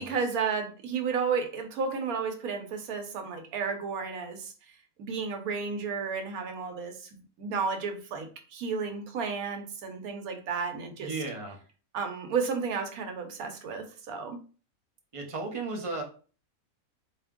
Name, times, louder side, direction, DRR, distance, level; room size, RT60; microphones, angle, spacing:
voice 1, 0.0-4.5 5.0-7.1 7.4-11.1 11.9-14.4, right 5 dB, 80° right, 5 dB, 1.2 m, -32 dB
voice 2, 11.0-11.6 15.1-16.0, right 3 dB, 30° right, 1 dB, 0.7 m, -34 dB
3.4 x 2.9 x 3.6 m, 0.38 s
omnidirectional pair, 1.5 m